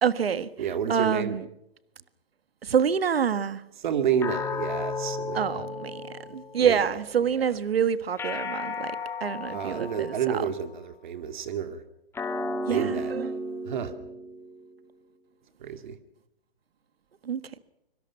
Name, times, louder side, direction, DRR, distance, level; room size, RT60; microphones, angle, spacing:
voice 1, 0.0-1.5 2.6-3.6 5.3-10.5 12.7-13.3 17.2-17.6, right 7 dB, 80° right, 1.6 m, -27 dB
voice 2, 0.6-1.3 3.8-5.4 6.6-6.8 9.5-11.8 12.7-13.1 13.6-13.9 15.6-16.0, right 8 dB, 50° right, 2.3 m, -29 dB
sound 1, 4.2-6.8 8.2-10.7 12.1-14.8, left 2 dB, 10° left, 2.3 m, -34 dB
24.5 x 23.5 x 5.8 m
hypercardioid pair, 145°, 30 cm